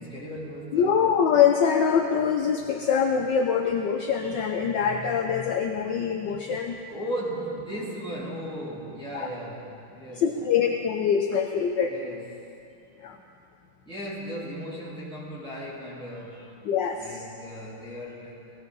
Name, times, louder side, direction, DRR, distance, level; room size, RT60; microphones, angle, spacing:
voice 1, 0.0-1.1 6.9-10.6 11.8-12.4 13.9-16.6 17.0-18.5, equal, ahead, -8 dB, 3.5 m, -36 dB
voice 2, 0.7-6.8 9.1-9.3 10.2-11.9 13.0-13.2 16.6-17.2, left 7 dB, 70° left, 3 dB, 1.2 m, -24 dB
19.0 x 16.0 x 4.0 m, 2.6 s
omnidirectional pair, 2.4 m